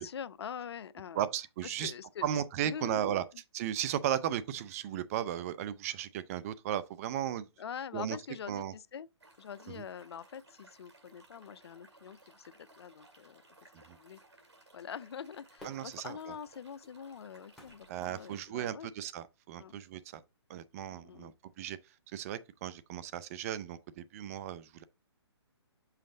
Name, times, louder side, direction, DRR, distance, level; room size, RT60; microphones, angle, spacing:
voice 1, 0.0-1.3 1.6-2.3 2.6-3.2 7.6-9.1 9.4-13.4 13.8-14.2 14.7-18.9 19.6-19.8 20.9-21.3, left 8 dB, 65° left, 0.5 m, -44 dB
voice 2, 1.1-1.9 2.2-3.2 3.5-7.5 7.9-8.2 8.5-8.7 9.7-9.8 13.9-14.0 15.6-16.3 17.9-20.2 20.5-21.8 22.1-24.8, right 11 dB, 35° right, 0.5 m, -35 dB
sound 1, 9.2-18.4, right 2 dB, 85° right, 2.1 m, -60 dB
Fireworks, 15.6-18.9 19.5-19.6, left 1 dB, 5° left, 2.7 m, -57 dB
5.7 x 5.1 x 3.8 m
hypercardioid pair, 140°, 14 cm